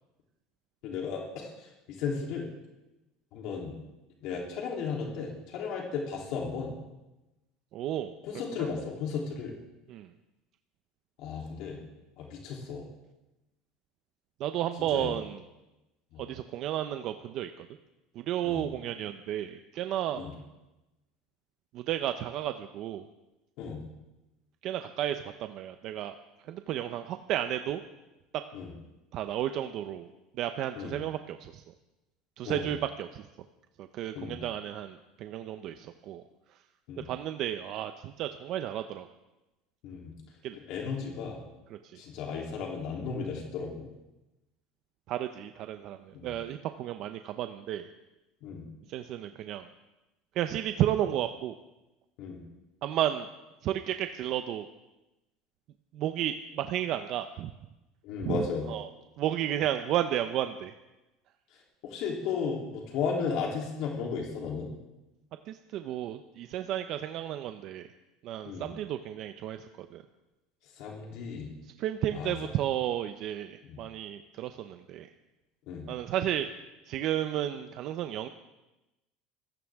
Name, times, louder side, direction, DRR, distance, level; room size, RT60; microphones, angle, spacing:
voice 1, 0.8-2.5 3.3-3.7 4.2-6.7 8.2-9.6 11.2-11.8 12.2-12.9 14.9-15.1 16.1-16.2 18.4-18.7 20.2-20.3 23.6-23.8 28.5-28.7 30.8-30.9 32.4-32.7 34.1-34.4 36.9-37.0 39.8-40.1 40.7-41.4 41.9-43.9 46.1-46.3 48.4-48.6 52.2-52.4 58.0-58.6 61.8-64.7 68.5-68.7 70.8-71.5 72.1-72.3 73.6-73.8 75.7-75.9, left 5 dB, 55° left, -1 dB, 3.2 m, -35 dB
voice 2, 7.7-8.1 8.5-8.7 9.9-10.1 14.4-15.4 16.2-17.7 18.1-20.3 21.7-23.1 24.6-26.2 26.5-27.8 29.1-30.1 30.4-31.6 32.4-33.2 33.8-36.2 37.0-39.1 40.4-40.6 41.7-42.0 45.1-47.9 48.9-49.7 50.3-51.6 52.8-53.3 53.6-54.7 55.9-57.5 58.2-58.9 59.2-60.7 65.5-67.9 68.2-70.0 71.8-75.1 75.9-76.5 76.9-78.3, right 11 dB, 45° right, 8 dB, 0.7 m, -33 dB
26.0 x 15.0 x 3.6 m, 1.0 s
cardioid pair, 155°, 0 cm